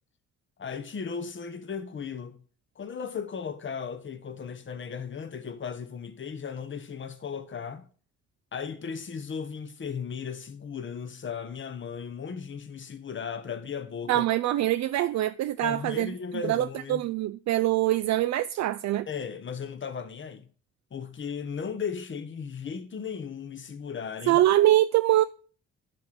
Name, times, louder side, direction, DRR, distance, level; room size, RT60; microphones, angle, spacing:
voice 1, 0.6-2.4 2.8-7.9 8.5-14.3 15.6-17.0 19.1-20.5 20.9-24.4, left 6 dB, 40° left, 1.2 m, -36 dB
voice 2, 14.1-16.1 16.4-19.1 24.3-25.2, right 14 dB, 65° right, 0.4 m, -24 dB
10.5 x 3.8 x 6.1 m
cardioid pair, 90°, 30 cm